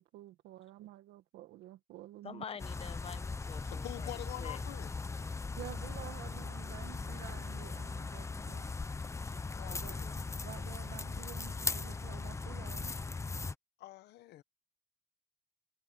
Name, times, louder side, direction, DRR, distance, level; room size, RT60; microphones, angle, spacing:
voice 1, 0.0-2.5 5.6-8.7 9.6-10.0 10.4-12.9, right 15 dB, 85° right, 1.6 m, -50 dB
voice 2, 2.2-4.6, left 7 dB, 35° left, 1.1 m, -47 dB
sound 1, 2.6-13.5, left 4 dB, 15° left, 0.8 m, -39 dB
voice 3, 3.6-4.9 9.6-10.2 13.8-14.4, left 15 dB, 80° left, 1.3 m, -46 dB
cardioid pair, 110°, 17 cm